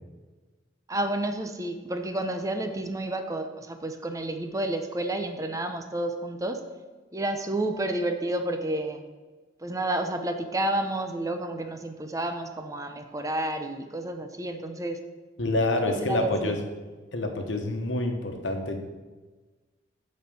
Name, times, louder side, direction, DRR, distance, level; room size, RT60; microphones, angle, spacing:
voice 1, 0.9-6.6 7.1-9.0 9.6-15.0 15.9-16.5, right 1 dB, 20° right, 6 dB, 0.6 m, -30 dB
voice 2, 15.4-16.6 17.1-18.8, left 2 dB, 85° left, 4 dB, 1.2 m, -27 dB
8.7 x 4.4 x 7.0 m, 1.3 s
head